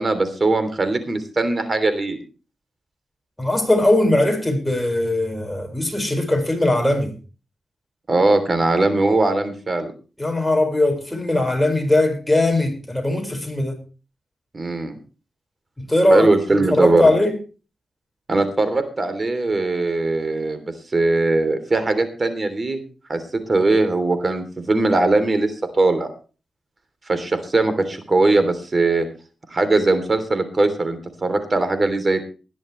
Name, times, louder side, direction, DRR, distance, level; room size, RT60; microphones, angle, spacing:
voice 1, 0.0-2.2 8.1-9.9 14.5-15.0 16.1-17.1 18.3-20.6 20.9-22.8 23.1-26.1 27.1-29.1 29.5-32.2, right 2 dB, 35° right, 3.2 m, -20 dB
voice 2, 3.4-7.1 10.2-13.8 15.8-17.3, left 1 dB, 5° left, 5.3 m, -19 dB
20.0 x 11.0 x 3.2 m
cardioid pair, 80°, 0 cm